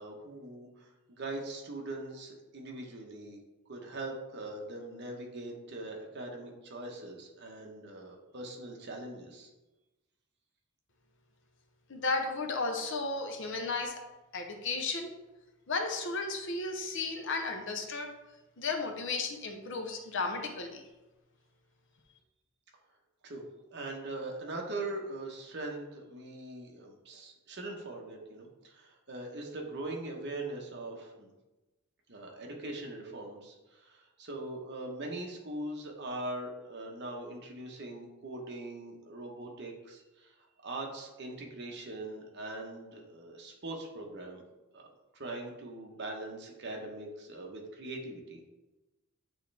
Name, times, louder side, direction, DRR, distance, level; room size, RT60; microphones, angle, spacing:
voice 1, 0.0-3.4 3.7-9.5 23.2-23.4 23.7-31.3 32.1-40.3 40.6-44.4 44.7-44.8 45.1-48.4, right 2 dB, 50° right, 1 dB, 1.1 m, -41 dB
voice 2, 11.9-14.0 14.3-15.1 15.7-18.1 18.6-20.8, left 3 dB, 55° left, 5 dB, 0.7 m, -34 dB
9.2 x 3.2 x 3.4 m, 1.1 s
head